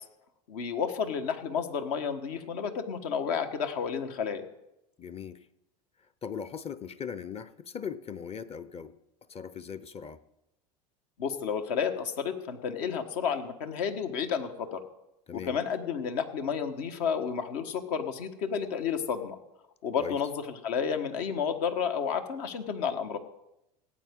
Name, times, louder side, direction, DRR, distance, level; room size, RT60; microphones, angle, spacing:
voice 1, 0.5-4.4 11.2-14.8 15.3-19.4 19.8-23.2, left 7 dB, 70° left, 6 dB, 1.5 m, -31 dB
voice 2, 5.0-5.4 6.2-9.0 9.3-10.2 15.3-15.6 20.0-20.2, left 7 dB, 30° left, 15 dB, 0.7 m, -39 dB
18.0 x 8.5 x 3.8 m, 0.86 s
hypercardioid pair, 85°, 21 cm